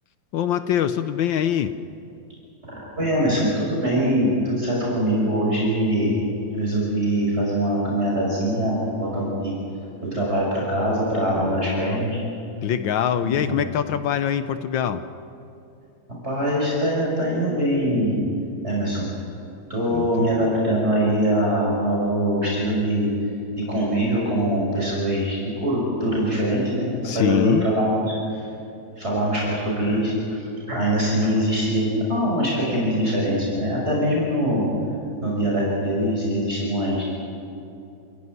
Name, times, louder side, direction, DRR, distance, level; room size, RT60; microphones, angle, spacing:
voice 1, 0.3-1.7 11.3-12.0 12.6-15.0 19.9-20.5 27.0-27.7, left 9 dB, 75° left, 11 dB, 1.5 m, -24 dB
voice 2, 2.9-6.1 6.5-9.5 10.0-12.2 13.3-13.6 16.2-18.2 18.6-19.1 19.7-23.1 23.6-28.5 29.0-34.7 35.2-37.0, equal, 30° right, -5 dB, 5.9 m, -23 dB
28.0 x 16.5 x 9.6 m, 2.7 s
omnidirectional pair, 2.1 m